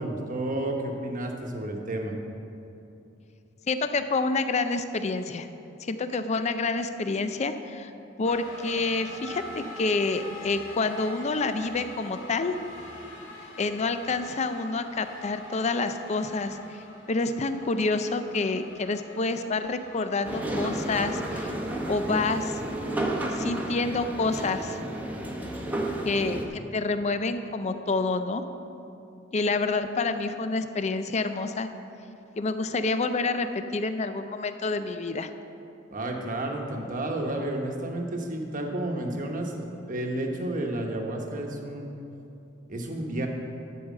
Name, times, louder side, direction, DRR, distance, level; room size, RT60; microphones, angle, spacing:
voice 1, 0.0-2.1 35.9-41.9 42.7-43.3, right 1 dB, 45° right, 2 dB, 1.1 m, -31 dB
voice 2, 3.7-5.5 5.8-7.9 8.2-12.6 13.6-21.5 21.9-22.6 23.3-24.8 26.0-28.4 29.3-31.7 32.4-35.3, left 3 dB, 35° left, 9 dB, 0.5 m, -28 dB
sound 1, 8.2-23.2, left 1 dB, 80° left, 2.0 m, -45 dB
sound 2, 20.2-26.5, right 1 dB, 10° right, 0.9 m, -31 dB
11.0 x 4.8 x 7.3 m, 2.7 s
head